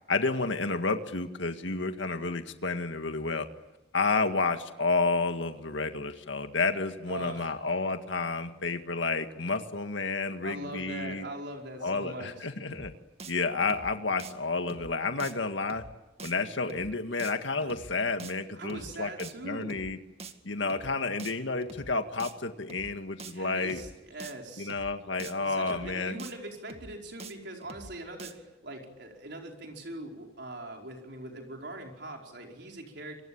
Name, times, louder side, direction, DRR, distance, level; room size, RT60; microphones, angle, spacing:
voice 1, 0.1-3.5 3.9-11.3 11.8-12.9 13.3-15.8 16.2-20.0 20.4-23.8 24.6-26.2, left 3 dB, 80° left, 7 dB, 1.9 m, -30 dB
voice 2, 7.1-7.6 10.4-12.5 18.5-19.8 23.3-24.7 25.4-33.2, right 2 dB, 65° right, 1 dB, 4.9 m, -42 dB
sound 1, 12.7-12.9 13.2-13.3 13.6-13.9 14.2-14.3 14.7-14.9 15.2-15.3 15.6-15.9 16.2-16.3 16.7-16.9 17.2-17.3 17.6-17.9 18.2-18.3 18.7-18.9 19.2-19.3 19.6-19.9 20.2-20.3 20.7-20.9 21.2-21.3 21.6-21.9 22.2-22.3 22.7-22.9 23.2-23.3 23.6-23.9 24.2-24.3 24.7-24.9 25.2-25.3 25.6-25.9 26.2-26.3 26.7-26.9 27.2-27.3 27.6-27.9 28.2-28.3, right 3 dB, 35° right, 2.1 m, -45 dB
27.5 x 24.5 x 8.7 m, 1.0 s
head